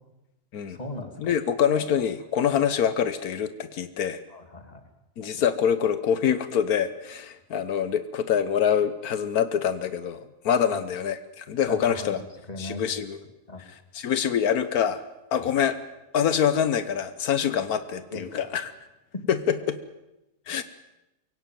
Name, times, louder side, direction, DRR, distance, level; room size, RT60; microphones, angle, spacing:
voice 1, 0.7-1.3 4.3-4.8 10.6-10.8 11.7-12.8 13.5-13.6 15.3-15.5 18.1-18.4, left 2 dB, 25° left, 5 dB, 2.8 m, -38 dB
voice 2, 1.2-4.2 5.2-12.2 12.6-13.2 13.9-15.0 15.3-15.8 16.1-18.7 19.3-19.4 19.7-19.8 20.5-20.6, left 8 dB, 85° left, 12 dB, 1.5 m, -25 dB
23.0 x 17.5 x 9.3 m, 0.95 s
omnidirectional pair, 1.5 m